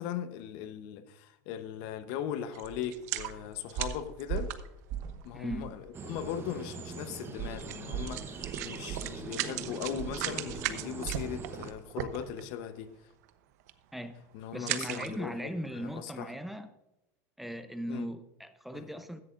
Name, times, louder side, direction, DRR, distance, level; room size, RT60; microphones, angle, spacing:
voice 1, 0.0-4.5 5.2-13.0 14.3-16.3 17.9-18.1 18.7-18.8, left 9 dB, 60° left, 1.0 m, -39 dB
sound 1, 2.5-5.3 6.1-6.2 6.5-6.6 7.6-7.8 8.1-12.6 13.1-13.3 13.6-14.0 14.5-15.4 15.9-16.0, right 13 dB, 75° right, 0.9 m, -37 dB
sound 2, 2.6-2.8 3.2-3.4 3.8-5.2 5.5-5.8 6.1-6.3 7.4-11.4 11.7-11.9 12.3-12.4, right 9 dB, 50° right, 1.5 m, -40 dB
voice 2, 5.3-5.7 13.9-14.1 14.5-16.7 17.4-19.2, equal, ahead, 0.7 m, -38 dB
sound 3, 5.9-11.7, right 5 dB, 25° right, 1.0 m, -43 dB
16.0 x 11.0 x 2.6 m
supercardioid pair, 125°, 9 cm